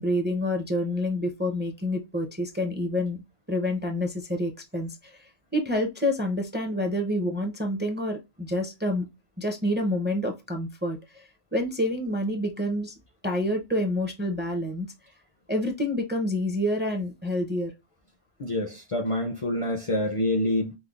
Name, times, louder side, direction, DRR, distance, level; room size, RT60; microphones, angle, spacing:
voice 1, 0.0-3.2 3.5-9.1 9.4-12.9 13.2-14.9 15.5-17.7, left 1 dB, 15° right, 0.5 m, -28 dB
voice 2, 18.4-20.8, left 1 dB, 40° left, 0.5 m, -27 dB
5.2 x 2.0 x 2.3 m
omnidirectional pair, 1.0 m